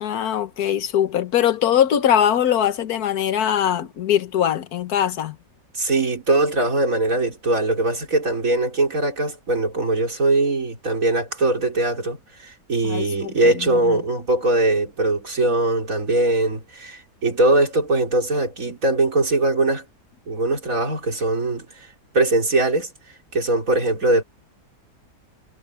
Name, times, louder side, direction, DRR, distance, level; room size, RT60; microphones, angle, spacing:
voice 1, 0.0-5.4 12.8-14.0, left 10 dB, 70° left, 1.5 m, -21 dB
voice 2, 5.7-19.8 20.3-21.9 22.1-22.9 23.3-24.2, right 2 dB, 55° right, 4.1 m, -21 dB
omnidirectional pair, 1.7 m